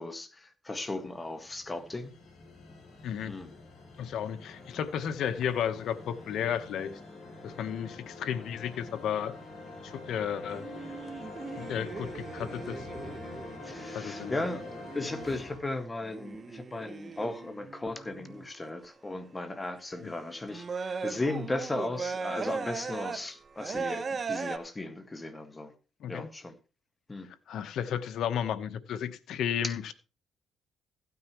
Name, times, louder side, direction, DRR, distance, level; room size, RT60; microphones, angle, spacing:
voice 1, 0.0-2.1 3.3-3.5 13.6-25.7 26.1-26.6 27.1-27.3 29.6-29.7, left 2 dB, 20° left, 1.7 m, -36 dB
sound 1, 0.9-15.6, left 3 dB, 60° left, 3.9 m, -46 dB
voice 2, 4.0-6.9 7.4-9.4 9.8-10.7 11.6-12.9 13.9-14.4 20.0-20.1 26.0-26.3 27.5-29.9, left 9 dB, 75° left, 1.0 m, -33 dB
sound 2, 10.5-18.5 18.8-18.9 19.8-19.9 20.5-24.6, right 5 dB, 40° right, 1.0 m, -39 dB
15.5 x 9.6 x 3.0 m
cardioid pair, 90°, 0 cm